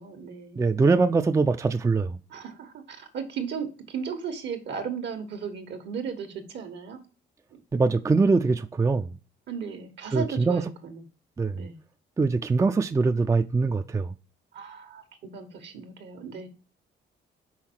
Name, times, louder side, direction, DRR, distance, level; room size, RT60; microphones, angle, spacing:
voice 1, 0.0-0.8 2.3-7.0 9.5-11.0 11.5-11.8 14.5-16.5, right 6 dB, 65° right, 1.3 m, -36 dB
voice 2, 0.6-2.2 7.7-9.1 10.1-10.6 11.4-11.7 12.2-14.1, right 4 dB, 15° right, 0.4 m, -23 dB
5.7 x 4.1 x 4.5 m
cardioid pair, 90°, 20 cm